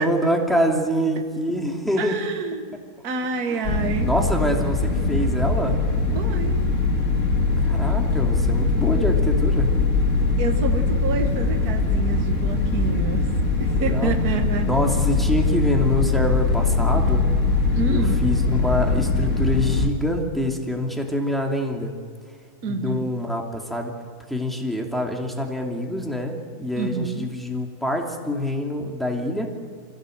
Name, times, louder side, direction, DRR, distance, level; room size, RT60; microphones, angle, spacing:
voice 1, 0.0-2.2 3.5-3.7 4.0-5.8 7.6-9.7 13.7-14.2 14.6-17.3 17.9-21.9 22.7-23.9 24.3-29.5, left 1 dB, ahead, 1 dB, 1.8 m, -25 dB
voice 2, 2.0-2.8 3.0-4.1 6.1-6.6 10.4-13.3 13.6-14.7 17.7-18.2 22.6-23.1 26.8-27.3, right 4 dB, 65° right, 4 dB, 0.9 m, -28 dB
sound 1, 3.6-19.9, left 3 dB, 30° left, 1.4 m, -21 dB
25.5 x 16.0 x 7.9 m, 2.1 s
omnidirectional pair, 3.9 m